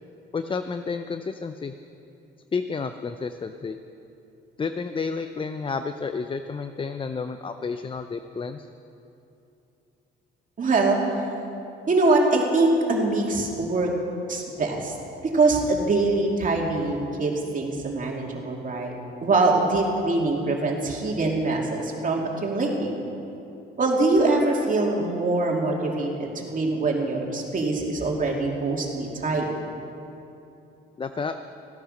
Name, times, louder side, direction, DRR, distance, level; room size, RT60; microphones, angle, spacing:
voice 1, 0.3-1.7 2.5-3.8 4.6-8.7 31.0-31.4, left 4 dB, 25° left, 9 dB, 0.5 m, -31 dB
voice 2, 10.6-11.0 11.9-13.9 14.3-14.9 15.3-18.9 19.2-22.9 23.8-29.5, right 2 dB, 40° right, -1 dB, 2.6 m, -23 dB
15.5 x 10.0 x 6.5 m, 2.9 s
cardioid pair, 90°, 20 cm